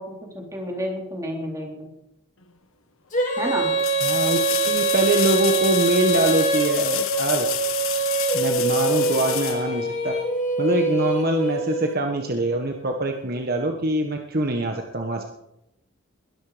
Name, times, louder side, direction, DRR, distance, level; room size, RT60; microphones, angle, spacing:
voice 1, 0.0-1.9 3.4-3.7, equal, 15° right, 0 dB, 3.8 m, -30 dB
sound 1, 2.4-2.5 3.8-10.4 13.3-13.4, left 12 dB, 75° left, 1.4 m, -29 dB
Female singing, 3.1-11.9, right 3 dB, 35° left, 4.1 m, -24 dB
voice 2, 4.0-7.5 8.3-10.1 10.6-15.2, right 1 dB, 45° right, 3 dB, 1.4 m, -24 dB
21.5 x 13.0 x 5.1 m, 0.88 s
head